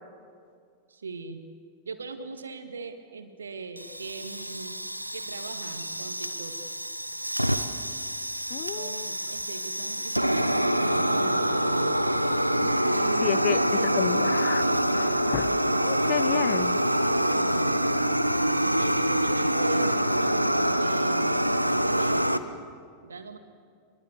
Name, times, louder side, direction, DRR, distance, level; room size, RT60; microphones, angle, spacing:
voice 1, 0.9-1.4 1.9-4.8 5.1-6.6 8.7-12.1 12.9-14.3 18.8-21.4 21.8-22.3 23.0-23.4, right 4 dB, 70° right, 8 dB, 1.9 m, -40 dB
Fire, 3.8-22.4, right 1 dB, 90° right, 0.9 m, -26 dB
voice 2, 8.5-9.1 12.6-12.7 13.2-13.6 14.0-14.6 14.9-16.8, left 16 dB, 45° left, 17 dB, 0.8 m, -31 dB
25.0 x 22.5 x 8.4 m, 2.2 s
figure-of-eight pair, 90°, 0 cm